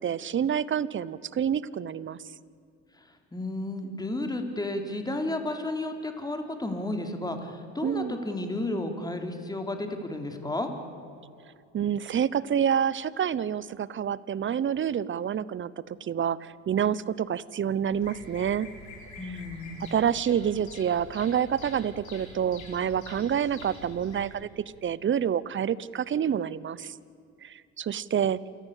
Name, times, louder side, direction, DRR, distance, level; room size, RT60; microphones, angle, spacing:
voice 1, 0.0-2.2 7.8-8.2 11.7-15.7 16.0-18.7 19.2-19.4 19.8-26.9 27.4-28.4, right 8 dB, 35° right, 20 dB, 0.9 m, -28 dB
voice 2, 3.3-10.7 19.2-19.9, left 2 dB, 10° left, 5 dB, 3.5 m, -32 dB
Bird vocalization bird call bird song, 17.9-24.3, left 2 dB, 55° left, 6.4 m, -46 dB
28.0 x 14.5 x 8.4 m, 2.5 s
supercardioid pair, 80°, 35 cm